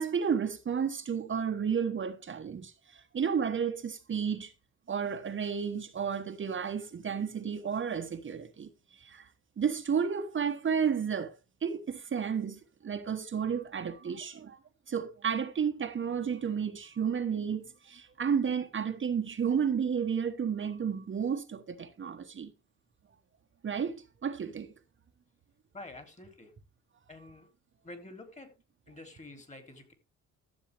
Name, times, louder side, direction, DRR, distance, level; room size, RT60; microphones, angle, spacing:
voice 1, 0.0-4.5 4.9-9.3 9.6-11.3 11.6-14.6 14.9-22.5 23.6-24.7, right 7 dB, 40° right, 1.2 m, -32 dB
voice 2, 25.7-26.5 27.1-27.5 27.8-28.6 28.9-29.9, left 2 dB, 25° left, 3.2 m, -48 dB
13.0 x 7.3 x 3.4 m
cardioid pair, 90°, 30 cm